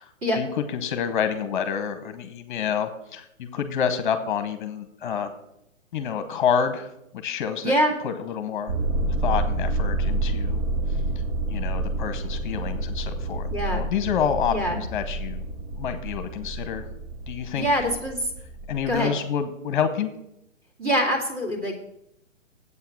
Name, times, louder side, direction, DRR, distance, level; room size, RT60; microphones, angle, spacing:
voice 1, 0.0-5.3 5.9-7.7 8.0-8.7 9.2-10.6 11.5-15.4 15.8-16.9 17.3-17.7 18.7-20.1, left 7 dB, 40° left, 9 dB, 0.8 m, -28 dB
voice 2, 7.6-7.9 13.5-13.8 14.5-14.8 17.5-18.3 18.9-19.1 20.8-21.8, equal, 30° right, -2 dB, 2.5 m, -24 dB
sound 1, 8.7-19.0, right 2 dB, 65° right, 1.3 m, -28 dB
8.1 x 5.7 x 7.2 m, 0.81 s
hypercardioid pair, 145°, 38 cm